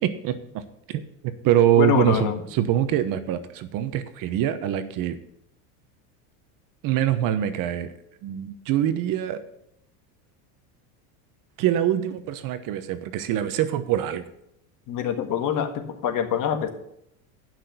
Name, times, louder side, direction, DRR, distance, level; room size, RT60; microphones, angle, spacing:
voice 1, 0.0-0.6 0.9-1.0 1.4-5.2 6.8-7.9 8.2-9.4 11.6-14.2, right 11 dB, 50° right, 12 dB, 1.0 m, -24 dB
voice 2, 1.8-2.4 14.9-16.7, left 8 dB, 45° left, 6 dB, 1.7 m, -25 dB
10.0 x 6.1 x 6.8 m, 0.76 s
supercardioid pair, 120°, 42 cm